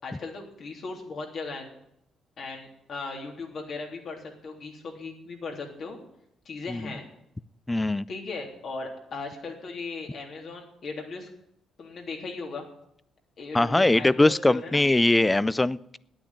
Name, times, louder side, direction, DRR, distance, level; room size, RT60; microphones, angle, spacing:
voice 1, 0.0-1.7 2.4-6.0 6.4-7.0 8.1-11.3 11.8-12.6 13.4-14.9, left 3 dB, 55° left, 3.3 m, -37 dB
voice 2, 7.7-8.1 13.5-16.0, left 2 dB, 15° left, 0.4 m, -22 dB
9.7 x 8.9 x 9.9 m
cardioid pair, 90°, 0 cm